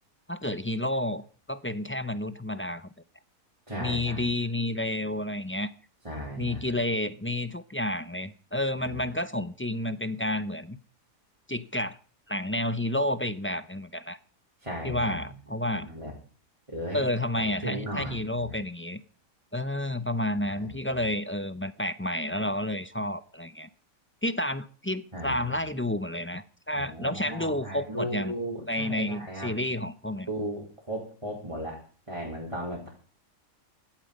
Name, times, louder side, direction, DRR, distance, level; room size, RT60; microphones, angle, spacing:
voice 1, 0.3-2.9 3.8-5.7 6.3-10.8 11.5-12.0 12.3-14.2 14.8-15.9 16.9-19.0 19.5-23.7 24.2-28.3 28.7-30.3, left 1 dB, 15° left, 0.4 m, -30 dB
voice 2, 3.7-4.2 6.0-6.6 8.8-9.0 14.6-15.2 15.7-16.1 16.7-17.1 17.4-18.6 20.4-21.0 25.1-25.5 26.7-29.5 30.3-31.8 32.1-32.9, equal, 20° right, 3.9 m, -36 dB
16.5 x 12.0 x 5.2 m
omnidirectional pair, 1.5 m